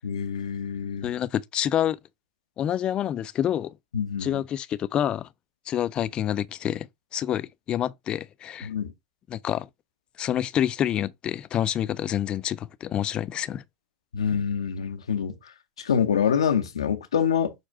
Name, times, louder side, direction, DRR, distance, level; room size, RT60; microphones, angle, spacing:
voice 1, 0.0-1.1 3.9-4.4 8.6-8.9 14.1-17.5, left 7 dB, 85° left, 0.6 m, -26 dB
voice 2, 1.0-2.0 2.6-3.7 4.2-5.3 5.7-6.9 7.1-8.7 9.3-9.7 10.2-13.6, left 11 dB, 35° left, 0.3 m, -27 dB
6.5 x 2.2 x 3.5 m
hypercardioid pair, 95°, 3 cm